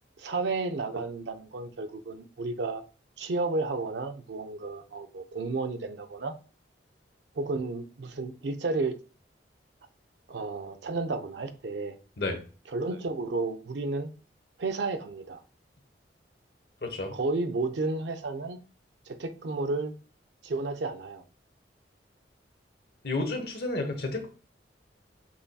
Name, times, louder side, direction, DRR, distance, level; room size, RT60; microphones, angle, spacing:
voice 1, 0.2-2.8 3.2-6.3 7.4-8.9 10.3-12.0 12.7-14.1 14.6-15.4 17.1-18.6 19.1-19.9 20.4-21.2, right 3 dB, 75° right, 0.5 m, -32 dB
voice 2, 16.8-17.2 23.0-24.3, left 2 dB, 60° left, 0.9 m, -31 dB
5.6 x 2.7 x 2.2 m
head